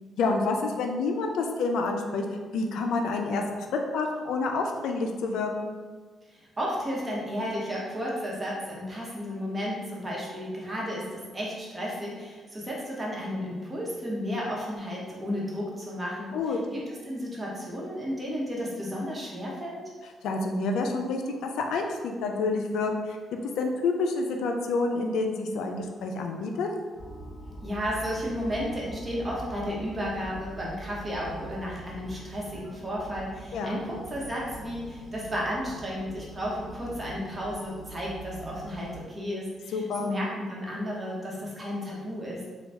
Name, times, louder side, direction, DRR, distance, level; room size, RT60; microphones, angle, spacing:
voice 1, 0.2-3.7 3.9-5.7 16.3-16.6 20.2-23.2 23.6-26.7 33.5-33.8 39.7-40.1, left 3 dB, 80° left, 3 dB, 0.4 m, -28 dB
voice 2, 6.3-19.8 27.6-42.4, equal, 20° right, -4 dB, 1.1 m, -33 dB
sound 1, 26.9-39.0, right 1 dB, 45° left, 1.4 m, -43 dB
4.0 x 2.3 x 3.4 m, 1.4 s
cardioid pair, 90°, 0 cm